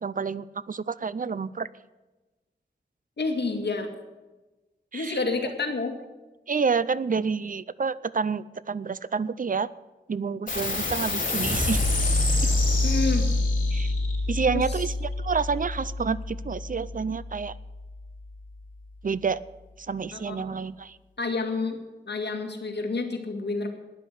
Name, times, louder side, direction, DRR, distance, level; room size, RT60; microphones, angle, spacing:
voice 1, 0.0-1.7 4.9-5.2 6.5-9.7 10.1-11.8 13.7-13.9 14.3-17.5 19.0-19.4 19.9-21.0, right 5 dB, 50° right, 18 dB, 0.5 m, -28 dB
voice 2, 3.2-3.9 4.9-6.0 12.8-13.3 14.5-14.8 20.1-20.6 21.2-21.8 22.1-23.7, left 3 dB, 65° left, 3 dB, 2.2 m, -29 dB
sound 1, 10.5-17.4, left 2 dB, 50° left, 4.6 m, -26 dB
13.0 x 10.0 x 8.4 m, 1.1 s
wide cardioid pair, 85°, 18 cm